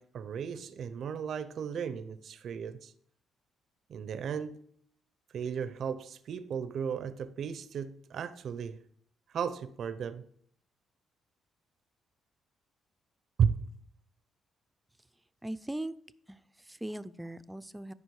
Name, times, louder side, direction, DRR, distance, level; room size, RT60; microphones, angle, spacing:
voice 1, 0.0-2.9 3.9-4.6 5.3-8.8 9.3-10.3 13.4-13.6, right 7 dB, 65° right, 0.5 m, -34 dB
voice 2, 15.4-15.9 16.3-17.9, right 1 dB, 10° right, 0.5 m, -39 dB
12.0 x 5.3 x 4.7 m
cardioid pair, 90°, 0 cm